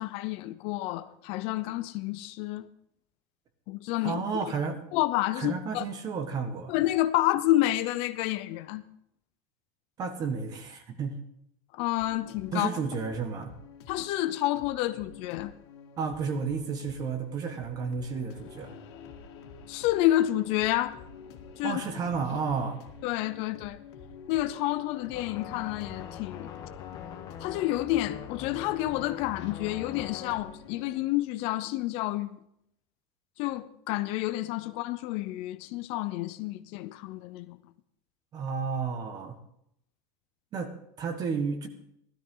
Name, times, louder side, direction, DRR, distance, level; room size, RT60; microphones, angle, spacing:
voice 1, 0.0-2.7 3.7-4.2 4.9-5.8 6.7-8.8 11.7-12.7 13.9-15.5 19.7-21.0 21.6-21.8 23.0-23.8 24.3-26.5 27.4-32.4 33.4-37.6, left 15 dB, 45° left, 0.6 m, -29 dB
voice 2, 4.0-4.8 5.4-6.7 10.0-11.2 12.5-13.5 16.0-18.7 21.6-22.8 38.3-39.4 40.5-40.7 41.0-41.7, right 5 dB, 30° right, 1.4 m, -32 dB
sound 1, 12.0-31.0, left 6 dB, 85° left, 2.0 m, -49 dB
sound 2, 25.1-30.4, left 9 dB, 25° left, 1.1 m, -43 dB
16.5 x 13.0 x 3.8 m
supercardioid pair, 170°, 14 cm